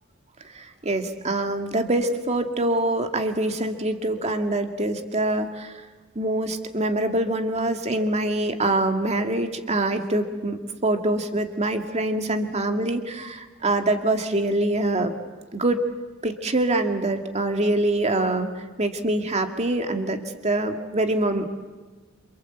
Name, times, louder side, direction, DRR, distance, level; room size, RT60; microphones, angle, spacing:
voice 1, 0.6-5.7 6.2-15.1 15.5-15.8 16.2-18.5 18.8-21.5, right 2 dB, 35° right, 5 dB, 2.2 m, -24 dB
28.0 x 26.5 x 8.1 m, 1.3 s
head